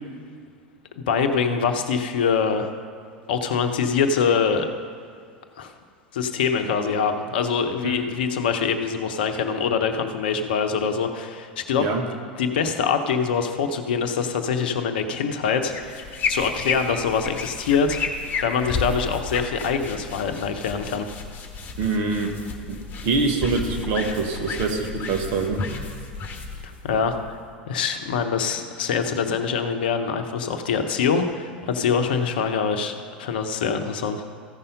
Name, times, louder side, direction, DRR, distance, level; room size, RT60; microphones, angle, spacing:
voice 1, 1.0-2.7 3.3-4.7 5.6-5.7 6.1-11.9 12.4-21.1 26.8-27.2 27.7-34.2, left 6 dB, 70° left, 7 dB, 0.8 m, -24 dB
sound 1, 15.7-27.6, left 4 dB, 35° left, 1.3 m, -32 dB
voice 2, 21.8-22.3 22.7-25.6, right 4 dB, 50° right, 3 dB, 1.4 m, -25 dB
14.5 x 5.6 x 5.3 m, 2.3 s
figure-of-eight pair, 80°, 5 cm